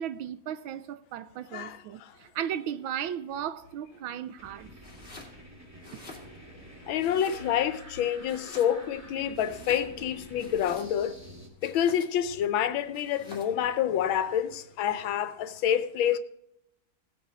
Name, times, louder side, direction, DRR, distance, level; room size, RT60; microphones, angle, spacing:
voice 1, 0.0-4.7 5.9-6.0, right 9 dB, 90° right, 1.5 m, -36 dB
voice 2, 1.5-2.2 6.9-11.2 11.6-16.2, left 9 dB, 80° left, 1.5 m, -28 dB
sound 1, 2.1-3.1 3.7-4.3 5.3-6.6 8.2-10.9 11.7-12.3 13.4-14.8, right 3 dB, 25° right, 4.2 m, -58 dB
sound 2, 3.4-11.5, equal, 10° right, 2.0 m, -49 dB
Domestic sounds home sounds, 4.8-5.4 5.7-6.6 7.0-7.8 8.2-9.0 9.3-11.1 11.6-12.3 12.9-13.6, left 3 dB, 25° left, 2.7 m, -48 dB
17.5 x 8.0 x 4.1 m
omnidirectional pair, 2.1 m